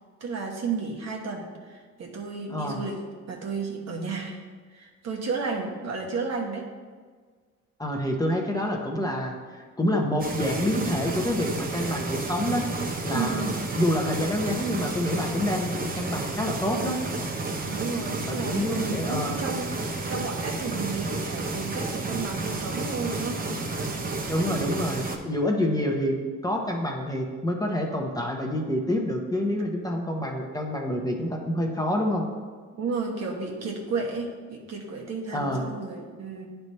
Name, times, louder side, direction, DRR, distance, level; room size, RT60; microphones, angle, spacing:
voice 1, 0.2-3.0 3.3-4.4 4.7-6.7 13.1-13.6 17.7-19.7 20.1-23.6 32.8-36.5, right 4 dB, 60° right, 0 dB, 1.2 m, -32 dB
voice 2, 2.5-2.8 7.8-12.7 13.0-13.4 13.8-17.0 18.2-19.4 24.3-26.2 26.4-32.2 35.3-35.7, left 1 dB, 10° left, 1 dB, 0.9 m, -27 dB
sound 1, 10.2-25.2, right 3 dB, 30° right, 0.8 m, -31 dB
9.7 x 3.4 x 4.2 m, 1.6 s
cardioid pair, 90°, 30 cm